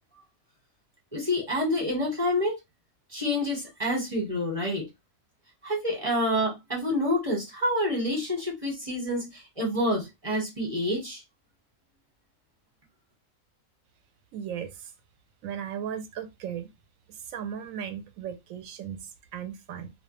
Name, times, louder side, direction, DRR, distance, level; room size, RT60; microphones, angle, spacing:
voice 1, 1.1-2.6 3.1-4.9 5.6-11.2, left 1 dB, 25° right, 1.0 m, -28 dB
voice 2, 14.3-14.9 15.4-16.7 17.1-19.9, right 8 dB, 75° right, 0.9 m, -36 dB
2.4 x 2.1 x 3.0 m
omnidirectional pair, 1.5 m